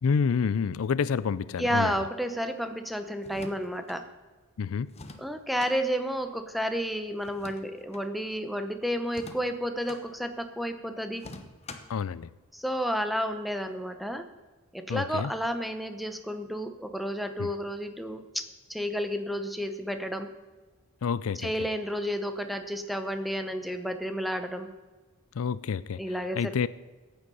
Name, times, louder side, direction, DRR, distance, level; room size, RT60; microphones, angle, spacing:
voice 1, 0.0-2.0 4.6-4.9 11.9-12.3 14.9-15.3 17.4-17.5 21.0-21.5 25.4-26.0 26.4-26.7, left 6 dB, 75° left, 0.4 m, -28 dB
voice 2, 1.6-4.1 5.2-11.3 12.5-14.3 14.7-18.4 18.7-20.3 21.4-24.7 26.0-26.7, equal, ahead, 0.8 m, -31 dB
sound 1, 3.2-4.0 4.9-5.8 7.2-8.1 9.1-10.0 11.2-12.0, left 2 dB, 30° left, 1.0 m, -45 dB
14.5 x 9.2 x 5.5 m
head